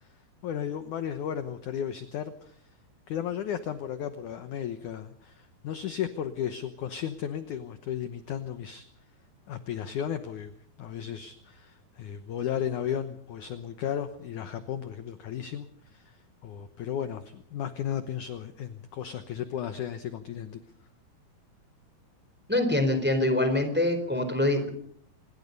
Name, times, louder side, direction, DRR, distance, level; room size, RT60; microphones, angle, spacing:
voice 1, 0.4-2.6 3.1-8.9 9.5-10.5 10.8-15.7 15.9-16.2 16.4-20.6, left 9 dB, 65° left, 9 dB, 2.1 m, -34 dB
voice 2, 22.5-24.7, left 1 dB, 5° right, 8 dB, 3.6 m, -25 dB
26.0 x 21.5 x 5.4 m, 0.64 s
omnidirectional pair, 4.7 m